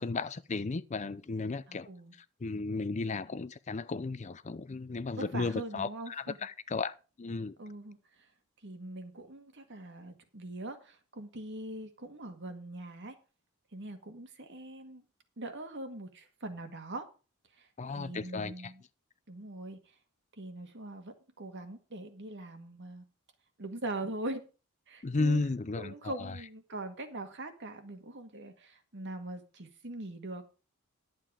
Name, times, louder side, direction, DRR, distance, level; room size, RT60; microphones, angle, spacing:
voice 1, 0.0-7.6 17.8-18.7 25.0-26.4, left 3 dB, 30° left, 0.5 m, -34 dB
voice 2, 1.7-2.1 5.1-6.4 7.6-8.0 8.6-13.2 13.7-15.0 15.4-17.1 17.6-17.7 18.0-18.8 19.3-19.8 20.4-23.0 23.6-24.4 24.9-25.4 25.8-30.4, right 2 dB, 55° right, 1.9 m, -42 dB
11.5 x 7.8 x 4.9 m
head